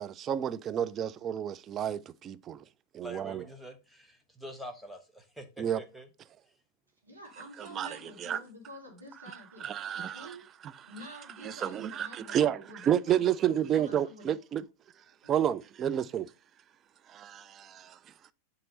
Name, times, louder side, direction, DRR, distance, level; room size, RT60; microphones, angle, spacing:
voice 1, 0.0-2.0 2.3-2.4 3.0-3.4 5.6-5.8 7.8-7.9 8.2-8.4 9.6-10.1 11.4-12.6 12.8-14.6 15.3-16.2, right 10 dB, 30° right, 0.4 m, -29 dB
voice 2, 3.0-6.1, right 1 dB, ahead, 1.1 m, -45 dB
voice 3, 7.0-9.7 10.0-10.5 10.8-14.3 15.2-15.3, equal, 80° right, 1.7 m, -49 dB
7.5 x 2.9 x 5.3 m
figure-of-eight pair, 90°, 0 cm